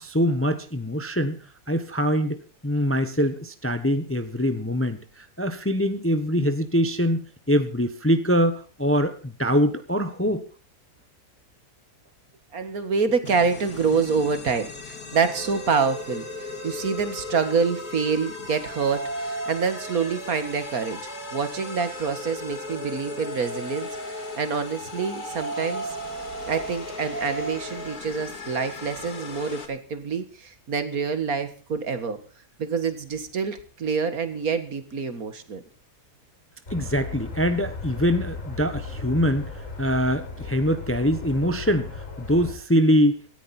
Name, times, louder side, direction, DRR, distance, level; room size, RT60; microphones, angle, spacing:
voice 1, 0.0-1.4 1.7-10.4 36.7-39.5 39.8-43.2, equal, 10° left, 9 dB, 0.9 m, -23 dB
voice 2, 12.5-21.0 21.3-23.9 24.4-26.0 26.5-32.2 32.6-35.6, right 5 dB, 65° right, 10 dB, 2.0 m, -26 dB
sound 1, 13.2-29.7, left 5 dB, 70° left, 2.5 m, -38 dB
sound 2, 15.1-17.9 18.6-24.4 24.9-28.0, right 4 dB, 35° right, 1.2 m, -37 dB
sound 3, 36.7-42.5, left 3 dB, 50° left, 7.8 m, -36 dB
17.5 x 14.0 x 4.3 m, 0.38 s
omnidirectional pair, 1.7 m